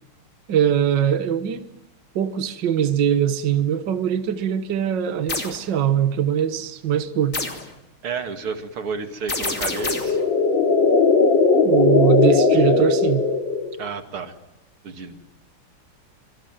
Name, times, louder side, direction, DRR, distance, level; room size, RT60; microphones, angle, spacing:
voice 1, 0.5-1.7 2.2-7.4 11.6-13.3, right 9 dB, 60° right, 10 dB, 1.9 m, -21 dB
sound 1, 5.3-5.6 7.3-7.7 9.3-10.2, left 3 dB, 35° left, 3.5 m, -27 dB
voice 2, 8.0-10.2 13.8-14.3 14.8-15.3, right 5 dB, 90° right, 7 dB, 3.1 m, -31 dB
sound 2, 9.5-13.9, left 4 dB, 60° left, 3.1 m, -18 dB
25.5 x 24.5 x 9.1 m, 0.90 s
omnidirectional pair, 2.3 m